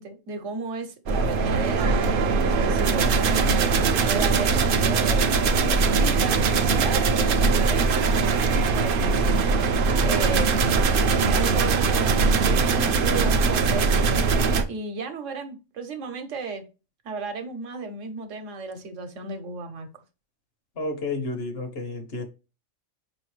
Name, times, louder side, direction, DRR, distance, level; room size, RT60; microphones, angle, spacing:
voice 1, 0.0-2.1 2.5-9.3 10.0-13.9 14.7-16.6 17.0-19.9, right 3 dB, 75° right, 1.1 m, -33 dB
sound 1, 1.1-14.6, right 4 dB, 60° right, 0.6 m, -21 dB
voice 2, 20.8-22.3, left 2 dB, 55° left, 1.0 m, -31 dB
4.9 x 3.0 x 3.1 m
omnidirectional pair, 1.3 m